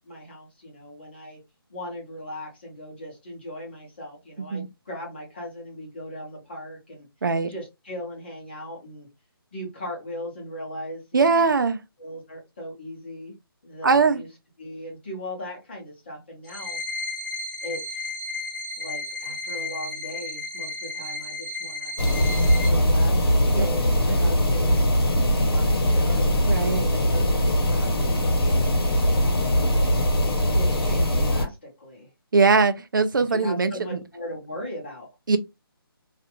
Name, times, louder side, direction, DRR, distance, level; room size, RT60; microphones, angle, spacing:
voice 1, 0.0-1.4 1.7-7.1 7.5-9.1 9.5-11.5 12.0-13.3 13.6-14.3 14.6-16.8 17.6-18.1 18.8-22.0 22.6-27.2 27.7-28.1 29.0-32.1 33.2-35.1, left 1 dB, 25° left, 0.9 m, -38 dB
voice 2, 11.1-11.8 13.8-14.2 23.5-23.7 24.1-24.3 26.5-26.9 32.3-34.0 35.3-35.4, right 4 dB, 55° right, 0.4 m, -21 dB
sound 1, 16.4-22.7, left 3 dB, 50° left, 0.7 m, -33 dB
sound 2, 22.0-31.5, equal, 75° left, 1.0 m, -21 dB
2.4 x 2.2 x 2.9 m
hypercardioid pair, 175°, 13 cm